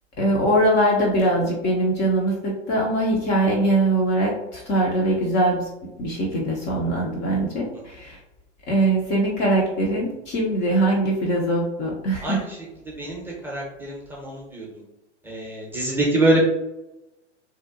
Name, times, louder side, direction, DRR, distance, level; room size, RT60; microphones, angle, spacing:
voice 1, 0.2-5.7 6.0-8.2 8.7-12.5, right 1 dB, 30° left, -3 dB, 0.5 m, -22 dB
voice 2, 13.0-14.7 15.2-16.4, right 1 dB, 5° right, -4 dB, 0.6 m, -24 dB
2.7 x 2.1 x 2.4 m, 0.93 s
hypercardioid pair, 100°, 36 cm